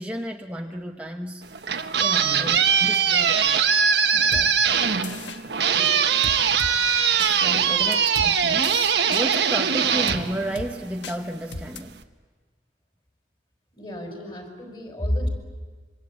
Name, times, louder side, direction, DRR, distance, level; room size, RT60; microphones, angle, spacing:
voice 1, 0.0-1.4 2.0-3.5 4.1-4.6 7.2-12.0, right 1 dB, 10° right, 2 dB, 0.9 m, -33 dB
sound 1, 1.4-11.1, right 7 dB, 75° right, 1.3 m, -21 dB
voice 2, 2.2-2.5 5.1-6.1 7.7-7.8 13.7-15.3, equal, 30° left, 3 dB, 5.4 m, -32 dB
sound 2, 4.3-4.5 5.0-5.4 6.2-6.7 7.2-7.3 7.9-8.3 8.6-9.2 10.1-10.2 10.6-10.7 11.0-11.2 11.5-11.8, left 3 dB, 85° left, 1.3 m, -34 dB
25.5 x 24.5 x 8.6 m, 1.5 s
head